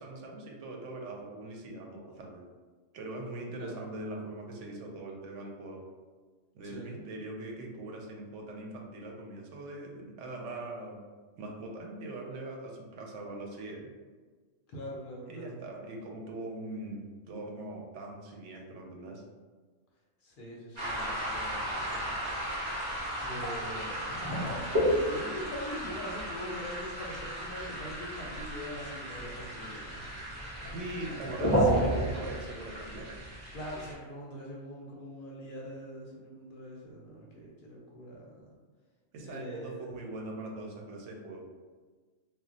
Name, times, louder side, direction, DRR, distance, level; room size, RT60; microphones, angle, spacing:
voice 1, 0.0-2.4 2.9-5.8 6.5-11.0 11.4-13.9 15.3-19.2 30.7-33.1 39.1-41.4, right 2 dB, 70° right, 0 dB, 0.9 m, -41 dB
voice 2, 3.6-3.9 6.6-7.1 14.7-15.6 20.2-22.3 23.2-24.2 24.8-30.8 33.5-38.5 39.2-39.9, equal, 55° left, -3 dB, 0.6 m, -43 dB
sound 1, 20.8-33.9, right 1 dB, 25° right, 0.7 m, -33 dB
2.3 x 2.1 x 3.7 m, 1.4 s
omnidirectional pair, 1.4 m